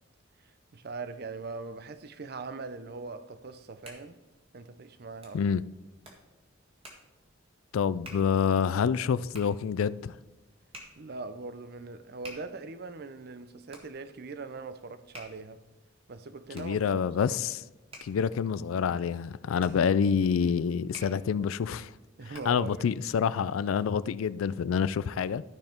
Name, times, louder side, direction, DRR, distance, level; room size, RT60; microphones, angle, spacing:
voice 1, 0.4-4.2 4.5-5.4 11.0-15.6 16.1-17.4 19.5-20.0 22.2-22.9, right 3 dB, 50° right, 0.5 m, -41 dB
Hands, 3.6-22.7, equal, 30° right, 1.8 m, -53 dB
voice 2, 7.7-10.2 16.5-17.6 18.0-21.9 22.5-25.4, left 6 dB, 85° left, 0.3 m, -27 dB
13.0 x 5.4 x 4.4 m
head